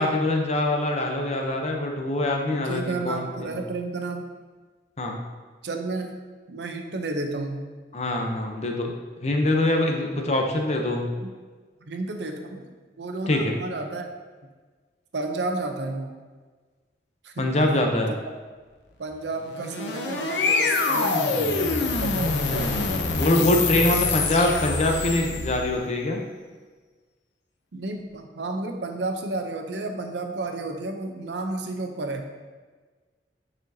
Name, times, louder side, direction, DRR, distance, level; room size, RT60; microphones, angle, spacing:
voice 1, 0.0-3.5 5.0-5.2 7.9-8.9 9.2-11.1 13.3-13.5 17.4-18.1 23.2-26.2, left 1 dB, 35° left, 2 dB, 0.7 m, -24 dB
voice 2, 2.5-4.3 5.6-6.2 6.5-7.7 9.9-10.0 11.2-11.4 11.9-14.1 15.1-16.2 17.2-17.5 19.0-23.1 23.6-24.0 27.7-32.3, right 2 dB, 75° right, 5 dB, 0.6 m, -32 dB
sound 1, 19.4-25.7, left 4 dB, 75° left, 0.6 m, -25 dB
9.1 x 4.3 x 2.8 m, 1.4 s
head